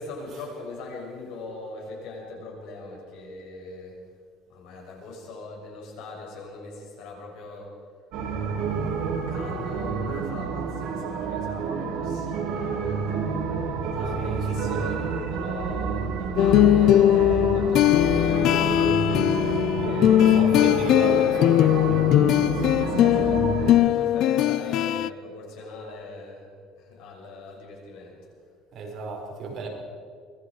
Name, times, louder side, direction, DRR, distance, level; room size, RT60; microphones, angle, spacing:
voice 1, 0.0-4.0 4.5-7.8 8.9-13.3 13.9-20.5 22.5-26.5 26.8-28.3 28.9-29.0, left 3 dB, 70° left, -1 dB, 7.0 m, -41 dB
sound 1, 8.1-23.7, right 5 dB, 65° right, 3.6 m, -29 dB
voice 2, 14.1-15.0 19.8-22.5 28.7-29.7, right 3 dB, 40° right, -1 dB, 5.3 m, -35 dB
sound 2, 16.4-25.1, left 12 dB, 50° left, 0.5 m, -20 dB
25.0 x 21.0 x 5.0 m, 2.2 s
cardioid pair, 165°, 0 cm